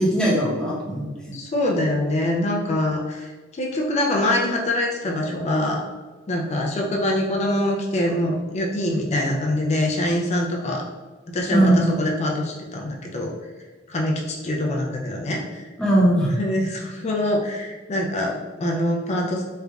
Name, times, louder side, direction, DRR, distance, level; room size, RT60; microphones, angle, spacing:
voice 1, 0.0-1.3 11.5-12.0 15.8-16.3, right 1 dB, 5° left, -7 dB, 0.9 m, -20 dB
voice 2, 1.3-5.8 6.3-10.9 11.3-13.3 13.9-15.7 16.4-19.4, left 1 dB, 35° left, 0 dB, 0.4 m, -24 dB
3.2 x 2.5 x 3.4 m, 1.3 s
head